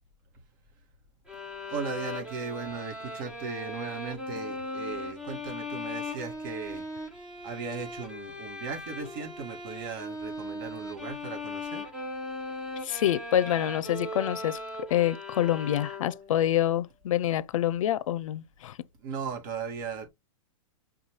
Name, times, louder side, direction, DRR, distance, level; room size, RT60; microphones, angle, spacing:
sound 1, 1.3-16.4, left 2 dB, 5° right, 0.7 m, -38 dB
voice 1, 1.7-6.9 7.4-11.9 19.0-20.1, right 5 dB, 40° right, 1.0 m, -37 dB
voice 2, 12.8-14.6 14.9-18.8, left 12 dB, 80° left, 0.5 m, -27 dB
5.5 x 2.2 x 3.1 m
supercardioid pair, 165°, 17 cm